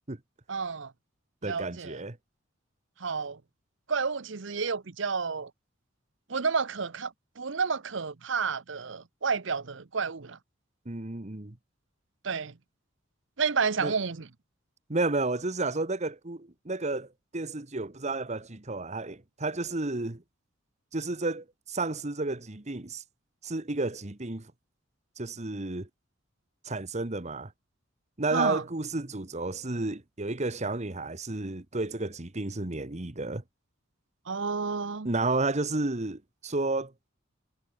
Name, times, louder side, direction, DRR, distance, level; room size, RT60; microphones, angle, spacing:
voice 1, 0.5-0.9 1.4-2.0 3.0-3.4 3.9-5.5 6.3-10.4 12.2-12.6 13.4-14.3 28.3-28.6 34.3-35.1, right 5 dB, 65° right, 0.9 m, -30 dB
voice 2, 1.4-2.2 10.8-11.6 13.8-13.9 14.9-20.2 20.9-23.0 23.4-24.5 25.2-25.9 26.6-27.5 28.2-33.4 35.0-36.9, right 2 dB, 35° right, 1.3 m, -31 dB
head